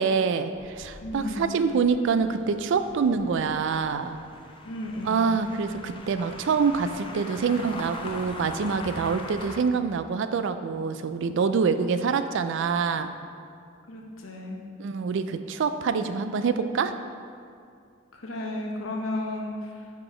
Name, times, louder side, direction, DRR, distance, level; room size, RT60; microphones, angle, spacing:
voice 1, 0.0-4.2 5.1-13.1 14.8-16.9, right 5 dB, 65° right, 10 dB, 0.3 m, -26 dB
sound 1, 0.5-9.6, left 2 dB, 25° left, 0.5 m, -42 dB
voice 2, 1.0-1.6 4.6-5.3 9.0-9.2 13.9-14.6 18.1-19.9, left 1 dB, 80° left, 0 dB, 0.9 m, -34 dB
5.8 x 4.9 x 4.9 m, 2.3 s
head